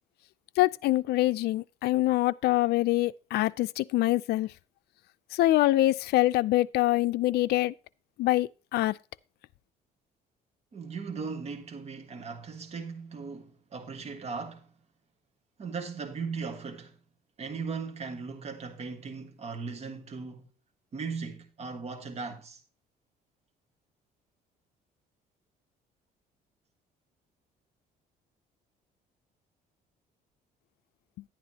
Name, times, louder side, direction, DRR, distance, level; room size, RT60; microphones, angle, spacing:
voice 1, 0.6-4.5 5.3-7.7 8.2-9.0, left 16 dB, 75° left, 0.5 m, -25 dB
voice 2, 10.7-14.7 15.6-17.0 17.4-20.5 20.9-22.6, right 5 dB, 40° right, 1.6 m, -38 dB
11.0 x 9.5 x 2.8 m
cardioid pair, 110°, 17 cm